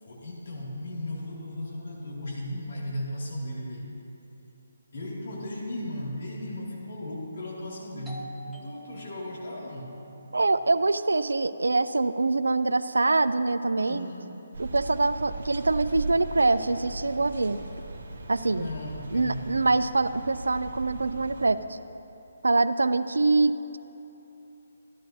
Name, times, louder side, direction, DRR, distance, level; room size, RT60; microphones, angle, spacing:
voice 1, 0.0-3.9 4.9-8.3 8.6-10.0 13.8-14.3 18.6-19.5, left 1 dB, 55° left, -4 dB, 2.5 m, -36 dB
Doorbell, 8.1-13.4, right 2 dB, 5° right, 0.8 m, -49 dB
voice 2, 10.3-14.1 14.6-17.6 18.3-18.7 19.1-21.8 22.4-23.8, right 3 dB, 75° right, 13 dB, 0.4 m, -24 dB
sound 1, 14.5-21.5, right 2 dB, 55° right, 1.3 m, -39 dB
13.0 x 11.5 x 2.8 m, 3.0 s
figure-of-eight pair, 145°, 0 cm